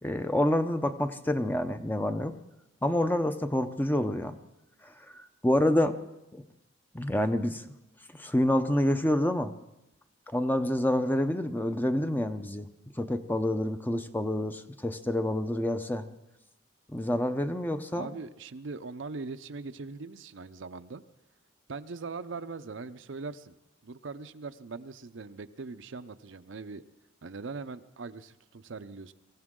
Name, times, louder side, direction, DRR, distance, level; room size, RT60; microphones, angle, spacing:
voice 1, 0.0-2.3 2.8-4.4 4.8-6.0 6.3-6.4 6.9-7.6 8.1-9.5 10.3-12.7 13.0-16.1 16.9-18.1, left 1 dB, 10° left, 8 dB, 0.6 m, -28 dB
voice 2, 18.0-21.0 21.7-23.6 23.8-26.8 27.2-29.1, right 4 dB, 65° right, 10 dB, 0.6 m, -41 dB
24.0 x 15.5 x 3.7 m, 0.93 s
head